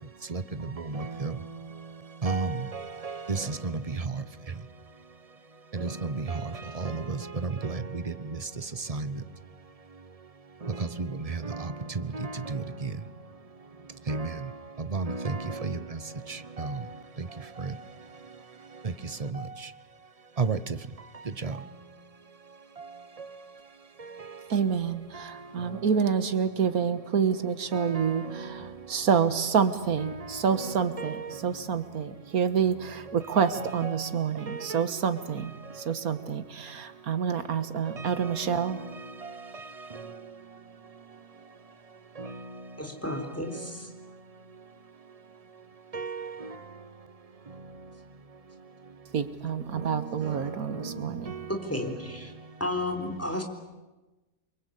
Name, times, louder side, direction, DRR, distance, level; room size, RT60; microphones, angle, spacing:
voice 1, 0.9-1.3 2.2-2.6 3.0-3.7 5.7-6.4 6.8-7.2 7.6-7.8 8.9-9.1 10.8-11.1 11.4-11.5 12.1-12.6 14.1-14.3 14.9-15.8 16.6-16.7 20.4-20.6 21.4-21.5 27.7-27.9 31.0-31.2 33.4-33.5 33.8-33.9 34.7-34.8 38.2-38.4 45.9-46.3, right 4 dB, 30° right, 13 dB, 0.9 m, -31 dB
voice 2, 24.5-28.6 28.9-35.5 35.9-38.8 49.1-51.3, right 7 dB, 85° right, 11 dB, 1.9 m, -28 dB
voice 3, 42.8-43.9 51.5-52.3 52.6-53.4, left 1 dB, 10° left, 3 dB, 4.0 m, -32 dB
28.5 x 23.5 x 8.4 m, 1.1 s
omnidirectional pair, 1.5 m